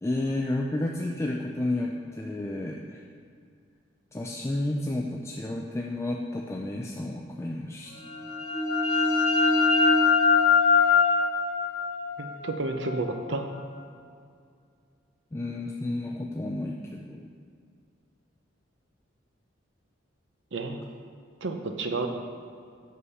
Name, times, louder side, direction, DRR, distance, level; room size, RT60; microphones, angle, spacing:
voice 1, 0.0-3.0 4.1-7.9 15.3-17.3, left 1 dB, 15° left, 0 dB, 0.3 m, -31 dB
sound 1, 8.0-13.5, left 5 dB, 75° left, 1.9 m, -23 dB
voice 2, 12.2-13.5 20.5-20.8 21.4-22.1, right 3 dB, 70° right, 5 dB, 0.7 m, -31 dB
6.4 x 5.4 x 5.5 m, 2.3 s
head